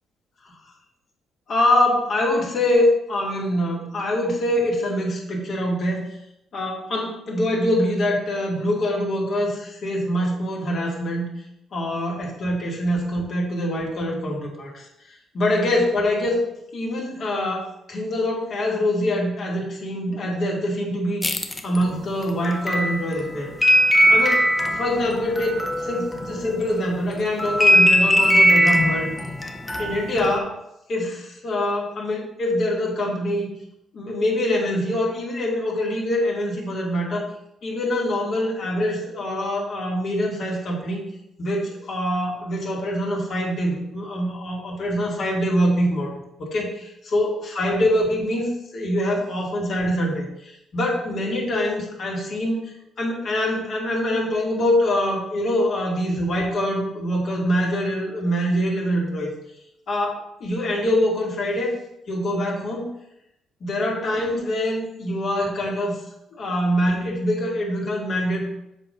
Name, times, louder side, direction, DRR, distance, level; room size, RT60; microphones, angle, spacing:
voice 1, 1.5-6.0 6.5-11.3 11.7-14.9 15.3-16.4 16.7-21.2 21.6-23.5 24.1-29.1 29.8-30.6 30.9-33.5 33.9-37.3 37.6-41.0 41.4-46.1 46.4-59.3 59.9-61.8 62.1-62.8 63.6-66.0 66.3-68.5, left 1 dB, 60° left, -2 dB, 2.3 m, -24 dB
sound 1, 21.2-26.7 27.1-30.4, equal, 20° left, 0.8 m, -20 dB
7.2 x 3.9 x 5.5 m, 0.81 s
cardioid pair, 90°, 0 cm